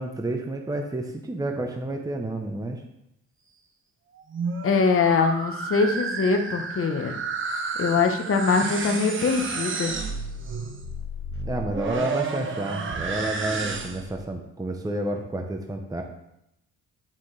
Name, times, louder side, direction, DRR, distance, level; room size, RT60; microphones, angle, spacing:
voice 1, 0.0-2.8 11.5-16.0, right 2 dB, 10° right, 3 dB, 0.9 m, -30 dB
sound 1, 4.2-14.2, right 4 dB, 40° right, 1.1 m, -31 dB
voice 2, 4.6-7.1 7.8-9.9, left 4 dB, 45° left, 5 dB, 1.1 m, -23 dB
9.5 x 5.7 x 3.3 m, 0.82 s
cardioid pair, 90°, 30 cm